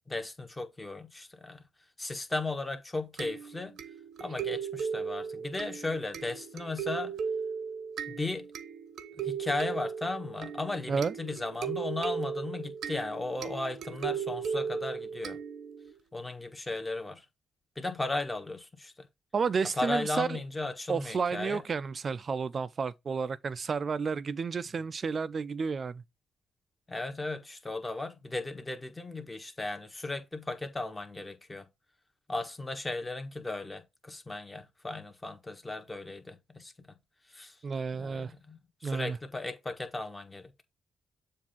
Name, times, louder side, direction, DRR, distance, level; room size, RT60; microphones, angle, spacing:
voice 1, 0.1-1.6 2.0-3.8 4.2-7.1 8.1-8.5 9.2-15.4 16.1-17.2 17.7-18.9 19.8-21.6 26.9-31.7 32.3-36.9 37.3-37.6 38.0-40.6, left 2 dB, 20° left, 1.5 m, -36 dB
sound 1, 3.2-15.9, right 7 dB, 75° right, 0.9 m, -37 dB
voice 2, 19.3-20.4 20.9-26.0 37.6-38.3 38.8-39.2, right 5 dB, 45° right, 0.5 m, -31 dB
7.3 x 2.7 x 5.6 m
cardioid pair, 80°, 0 cm